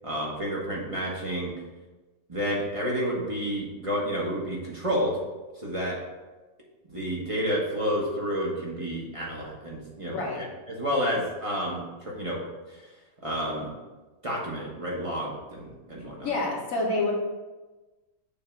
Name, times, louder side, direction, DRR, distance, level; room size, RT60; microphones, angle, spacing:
voice 1, 0.0-1.5 2.3-5.2 5.5-6.0 6.9-12.4 12.7-12.9 13.2-13.7 14.2-16.3, equal, 25° right, -4 dB, 1.1 m, -30 dB
voice 2, 10.1-10.4 16.2-17.1, left 2 dB, 60° left, -2 dB, 1.7 m, -27 dB
6.9 x 2.8 x 5.7 m, 1.2 s
omnidirectional pair, 1.7 m